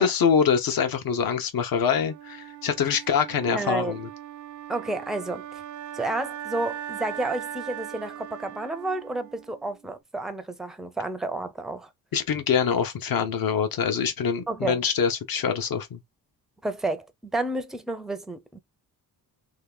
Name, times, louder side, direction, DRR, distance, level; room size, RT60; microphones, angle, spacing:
voice 1, 0.0-4.1 12.1-16.0, left 7 dB, 65° left, 1.0 m, -24 dB
Wind instrument woodwind instrument, 1.9-9.9, right 10 dB, 50° right, 0.5 m, -39 dB
voice 2, 3.5-4.0 4.7-5.6 5.9-11.9 14.5-14.8 16.6-18.6, right 2 dB, ahead, 0.5 m, -31 dB
2.9 x 2.4 x 3.6 m
cardioid pair, 125°, 38 cm